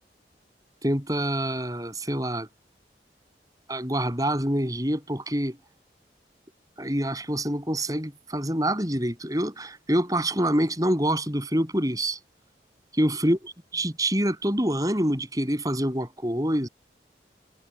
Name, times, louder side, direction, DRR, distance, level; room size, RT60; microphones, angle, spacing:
voice 1, 0.8-2.5 3.7-5.6 6.8-12.2 13.0-16.7, right 1 dB, 20° right, 8.0 m, -26 dB
head